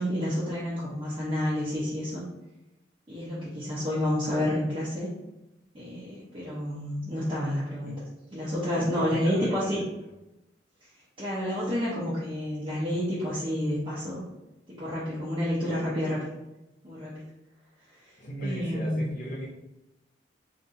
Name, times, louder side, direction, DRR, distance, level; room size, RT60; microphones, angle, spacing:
voice 1, 0.0-2.2 3.1-5.1 5.7-8.0 8.3-9.8 11.2-14.2 14.7-16.3 16.8-17.3 18.0-18.1 18.4-19.1, equal, 30° right, -10 dB, 0.8 m, -29 dB
voice 2, 8.8-9.8 18.2-19.5, right 1 dB, 50° left, -5 dB, 0.6 m, -37 dB
3.8 x 2.6 x 2.6 m, 0.96 s
head